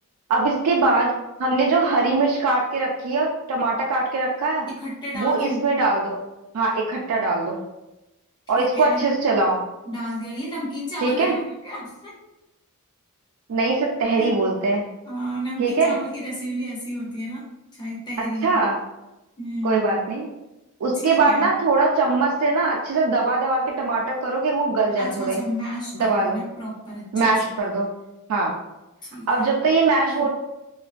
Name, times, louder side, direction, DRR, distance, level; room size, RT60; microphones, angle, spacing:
voice 1, 0.3-1.1 1.4-4.7 5.1-6.2 6.5-7.6 8.5-9.6 11.0-11.4 13.5-14.9 15.6-15.9 18.4-18.7 19.6-20.2 20.8-25.4 26.0-26.4 27.1-27.9 28.3-28.5 29.3-30.3, right 3 dB, 75° right, -2 dB, 0.3 m, -21 dB
voice 2, 4.7-5.6 8.6-9.1 9.9-12.1 14.2-14.3 15.0-18.6 19.4-20.0 21.0-21.5 25.0-27.8 29.0-29.7 30.1-30.3, equal, 20° left, -5 dB, 0.6 m, -32 dB
2.4 x 2.2 x 2.4 m, 0.97 s
head